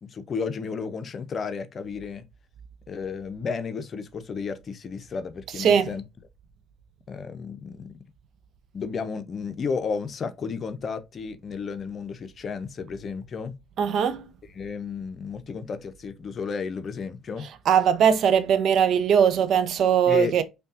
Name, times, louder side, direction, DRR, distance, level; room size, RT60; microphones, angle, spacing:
voice 1, 0.0-2.2 2.9-6.0 7.1-8.0 8.7-13.6 14.5-17.5 20.1-20.3, left 5 dB, 45° left, 0.5 m, -33 dB
voice 2, 5.6-5.9 13.8-14.3 17.7-20.4, right 8 dB, 60° right, 0.4 m, -20 dB
5.2 x 2.2 x 2.5 m
hypercardioid pair, 55°, 0 cm